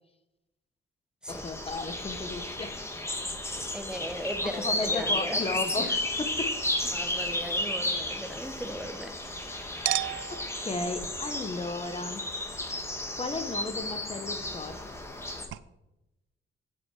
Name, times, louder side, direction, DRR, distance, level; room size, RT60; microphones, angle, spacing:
voice 1, 1.3-2.8 4.4-6.6 9.5-12.6 13.1-14.8, left 3 dB, 30° left, 10 dB, 0.9 m, -35 dB
sound 1, 1.3-15.5, left 1 dB, 15° left, 1.8 m, -33 dB
voice 2, 3.7-6.0 6.9-9.2, equal, 5° right, 8 dB, 1.0 m, -37 dB
Chink clink, 6.5-9.4 9.9-15.2 15.5-15.6, right 15 dB, 75° right, 0.5 m, -40 dB
9.0 x 8.7 x 4.8 m, 0.93 s
cardioid pair, 90°, 20 cm